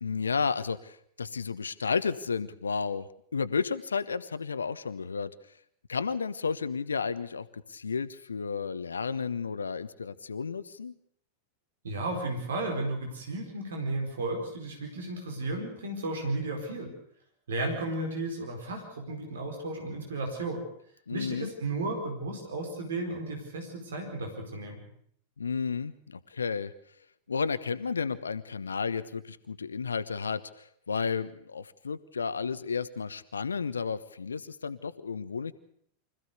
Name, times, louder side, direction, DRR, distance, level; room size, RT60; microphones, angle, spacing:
voice 1, 0.0-5.3 5.9-10.9 21.1-21.5 25.4-26.7 27.3-35.5, left 5 dB, 75° left, 13 dB, 0.9 m, -32 dB
voice 2, 11.8-16.9 17.5-20.6 21.1-24.8, right 2 dB, 65° right, 3 dB, 4.6 m, -34 dB
25.0 x 15.0 x 8.2 m, 0.67 s
figure-of-eight pair, 90°, 0 cm